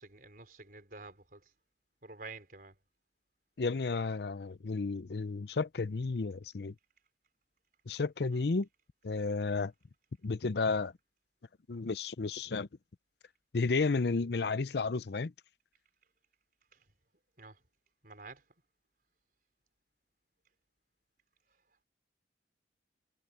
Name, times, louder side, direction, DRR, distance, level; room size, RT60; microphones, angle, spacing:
voice 1, 0.0-1.5 2.0-2.8 8.3-8.5 16.7-16.8 17.4-17.6 18.0-18.4, right 3 dB, 50° right, 5.0 m, -49 dB
voice 2, 3.6-6.7 7.9-8.7 9.0-9.7 10.2-10.9 11.7-12.7 13.5-15.3, left 4 dB, 65° left, 0.6 m, -32 dB
head